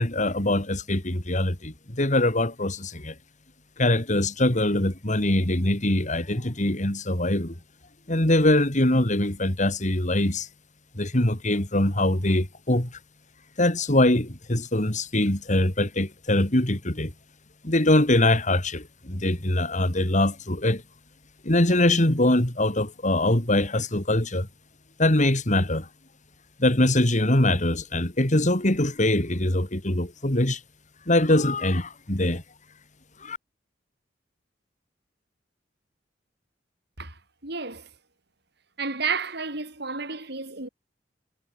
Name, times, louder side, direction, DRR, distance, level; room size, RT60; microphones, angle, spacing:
voice 1, 0.0-3.2 3.8-7.6 8.1-10.5 10.9-13.0 13.6-17.1 17.6-20.8 21.4-24.5 25.0-25.9 26.6-30.6 31.1-32.4 33.2-33.4, left 1 dB, 40° left, 3.6 m, -23 dB
voice 2, 37.0-37.9 38.8-40.7, right 5 dB, 60° right, 6.4 m, -31 dB
head